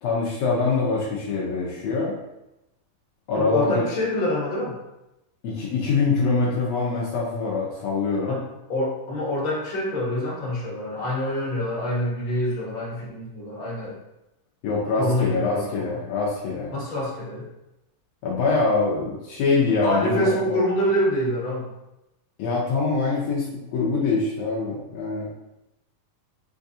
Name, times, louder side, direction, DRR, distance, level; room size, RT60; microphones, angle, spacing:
voice 1, 0.0-2.1 3.3-3.8 5.4-8.4 14.6-16.7 18.2-20.5 22.4-25.3, left 4 dB, 90° left, -5 dB, 1.4 m, -24 dB
voice 2, 3.3-4.7 8.3-8.4 8.7-14.0 15.0-16.0 16.7-17.4 19.8-21.7, left 1 dB, 60° left, -6 dB, 1.3 m, -26 dB
7.1 x 2.4 x 2.7 m, 0.93 s
omnidirectional pair, 3.9 m